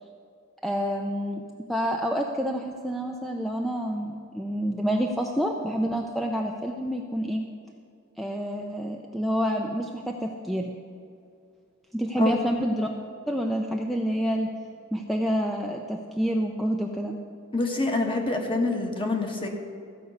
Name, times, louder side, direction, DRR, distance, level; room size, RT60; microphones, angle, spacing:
voice 1, 0.6-1.4 1.7-7.5 8.2-10.7 11.9-12.9 13.3-14.5 14.9-17.2, equal, ahead, 1 dB, 0.5 m, -28 dB
voice 2, 17.5-19.5, left 2 dB, 25° left, 2 dB, 1.3 m, -26 dB
14.5 x 5.3 x 7.9 m, 2.4 s
head